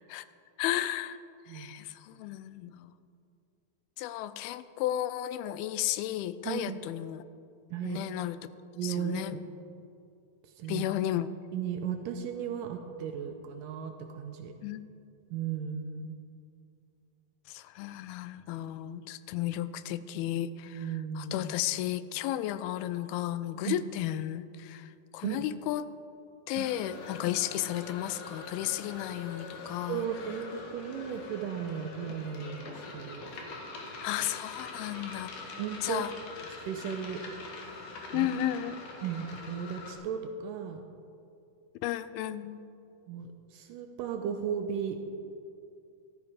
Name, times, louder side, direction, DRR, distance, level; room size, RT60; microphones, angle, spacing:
voice 1, 0.6-1.2 1.5-2.9 4.0-7.2 7.8-8.4 8.8-9.3 10.7-11.3 14.6-14.8 17.5-20.8 21.2-25.8 26.5-30.1 34.0-35.3 35.8-36.1 38.1-38.8 41.8-42.6, left 13 dB, 85° left, 14 dB, 2.4 m, -33 dB
voice 2, 6.5-6.8 7.7-8.0 8.8-9.4 10.4-10.8 11.5-14.5 15.3-16.2 20.7-21.5 23.6-23.8 25.2-25.5 26.6-26.7 29.9-33.3 35.5-36.0 36.7-37.2 37.6-38.3 39.0-40.8 43.1-45.0, right 8 dB, 80° right, 5 dB, 2.1 m, -36 dB
sound 1, 26.5-39.9, left 3 dB, 60° left, 2.8 m, -44 dB
14.0 x 13.0 x 4.9 m, 2.5 s
omnidirectional pair, 4.3 m